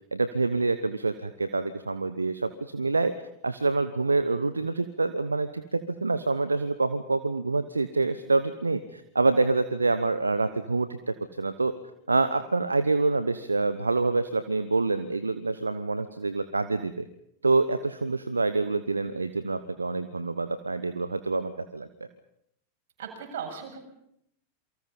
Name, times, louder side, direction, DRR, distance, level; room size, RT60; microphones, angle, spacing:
voice 1, 0.1-3.1 3.4-11.7 12.1-17.0 17.4-21.9, right 3 dB, 80° right, 12 dB, 1.0 m, -26 dB
voice 2, 23.0-23.8, right 7 dB, 55° right, 2 dB, 7.5 m, -37 dB
28.0 x 24.0 x 5.6 m, 0.74 s
figure-of-eight pair, 90°, 0 cm